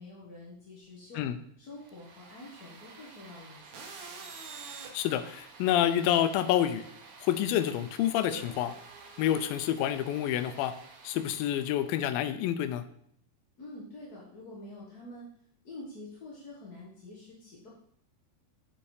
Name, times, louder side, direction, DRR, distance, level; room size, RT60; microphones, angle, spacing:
voice 1, 0.0-1.3 1.6-3.8 13.6-15.3 15.6-17.7, left 2 dB, 50° left, -5 dB, 1.1 m, -47 dB
sound 1, 1.8-12.0, right 4 dB, 65° right, 2.3 m, -49 dB
voice 2, 4.9-6.8 7.2-8.7 9.2-10.7 11.0-12.8, left 11 dB, 85° left, 10 dB, 2.4 m, -28 dB
7.1 x 6.4 x 4.8 m, 0.65 s
omnidirectional pair, 4.1 m